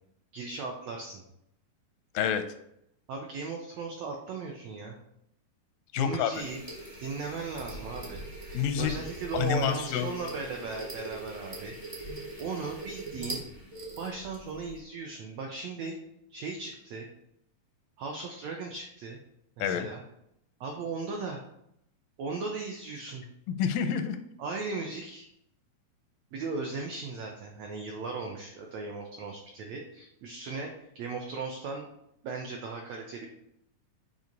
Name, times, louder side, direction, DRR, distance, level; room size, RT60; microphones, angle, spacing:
voice 1, 0.3-1.2 3.1-5.0 6.0-6.6 7.0-8.2 8.5-11.7 12.4-13.4 14.0-16.0 16.3-17.1 18.0-19.2 19.6-20.0 20.6-21.4 22.2-23.2 24.4-25.3 26.3-31.9 32.2-33.3, right 4 dB, 85° right, 1 dB, 1.5 m, -37 dB
voice 2, 5.9-6.3 8.5-8.9 9.3-10.1 19.6-19.9 23.5-24.2, left 8 dB, 85° left, 8 dB, 2.3 m, -28 dB
sound 1, 6.3-14.8, right 1 dB, 45° right, 0.8 m, -42 dB
7.7 x 2.8 x 5.2 m, 0.77 s
omnidirectional pair, 3.9 m